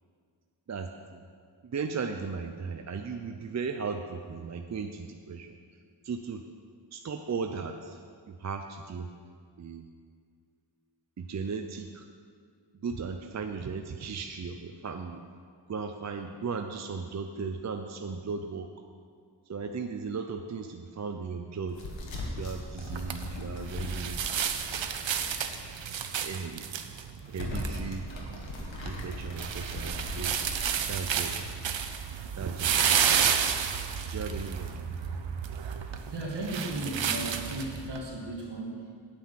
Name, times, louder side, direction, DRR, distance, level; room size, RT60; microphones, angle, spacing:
voice 1, 0.7-1.2 1.6-5.6 6.0-6.4 6.9-8.0 8.3-9.1 9.6-9.8 11.2-12.0 12.8-15.2 15.7-18.7 19.5-21.8 22.3-24.2 26.2-26.6 27.3-28.1 28.6-30.3 30.9-31.6 32.4-33.6 34.1-34.7, right 5 dB, 40° right, 5 dB, 0.5 m, -36 dB
sound 1, 21.7-25.6 25.9-26.0 26.6-26.9 27.3-31.6, left 2 dB, 85° left, 1.8 m, -39 dB
sound 2, 22.8-38.0, right 7 dB, 80° right, 0.8 m, -31 dB
voice 2, 36.1-38.9, right 2 dB, 65° right, -2 dB, 2.2 m, -35 dB
9.4 x 9.0 x 5.8 m, 2.1 s
wide cardioid pair, 125°, 44 cm